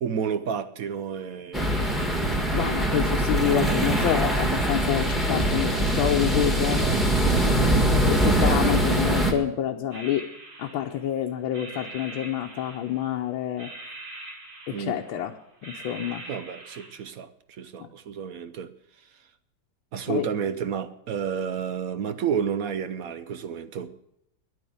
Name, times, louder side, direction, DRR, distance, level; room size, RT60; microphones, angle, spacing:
voice 1, 0.0-2.0 3.5-4.2 14.7-15.0 16.3-18.7 19.9-23.9, right 7 dB, 65° right, 0.8 m, -31 dB
sound 1, 1.5-9.3, right 1 dB, ahead, 1.5 m, -23 dB
voice 2, 2.5-6.8 8.0-10.2 10.6-13.7 14.7-15.3 15.6-16.2 17.8-17.9 20.1-20.3, left 11 dB, 80° left, 1.6 m, -27 dB
sound 2, 9.9-11.1 11.5-13.2 13.6-15.3 15.6-17.0, right 2 dB, 80° right, 3.8 m, -43 dB
11.0 x 9.5 x 9.4 m
omnidirectional pair, 2.2 m